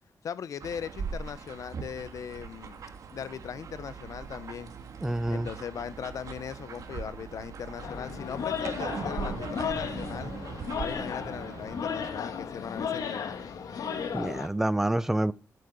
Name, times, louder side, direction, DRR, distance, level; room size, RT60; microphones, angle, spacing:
voice 1, 0.2-2.8 3.1-4.7 5.3-10.3 10.8-13.4, left 7 dB, 65° left, 0.7 m, -39 dB
sound 1, 0.6-12.2, right 5 dB, 70° right, 1.6 m, -42 dB
voice 2, 5.0-5.5 14.1-15.3, right 1 dB, 5° right, 0.4 m, -27 dB
sound 2, 7.8-14.5, left 6 dB, 85° left, 1.4 m, -34 dB
sound 3, 8.6-13.4, right 7 dB, 55° right, 0.6 m, -42 dB
8.5 x 8.0 x 6.8 m
wide cardioid pair, 160°, 6 cm